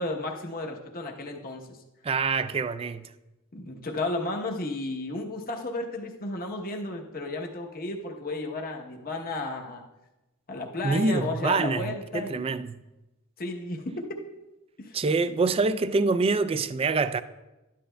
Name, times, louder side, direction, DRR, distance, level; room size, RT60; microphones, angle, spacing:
voice 1, 0.0-1.8 3.5-9.8 10.5-12.6 13.4-14.2 14.8-15.0, left 2 dB, 40° left, 0.9 m, -33 dB
voice 2, 2.0-3.0 10.8-12.7 14.9-17.2, right 3 dB, 25° right, 0.3 m, -25 dB
12.5 x 10.5 x 2.2 m
head